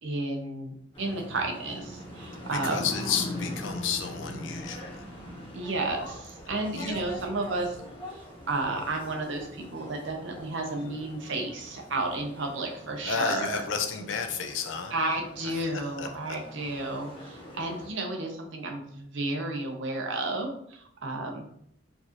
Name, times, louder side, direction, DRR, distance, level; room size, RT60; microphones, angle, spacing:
voice 1, 0.0-2.9 5.5-7.8 8.1-13.6 14.9-21.4, right 2 dB, 65° right, 2 dB, 0.7 m, -32 dB
sound 1, 0.9-17.9, left 1 dB, 25° left, 1.0 m, -42 dB
voice 2, 2.5-5.0 6.7-7.1 13.0-14.9 15.4-15.7 16.0-16.4, left 6 dB, 65° left, 5 dB, 0.5 m, -32 dB
4.5 x 2.6 x 2.9 m, 0.69 s
head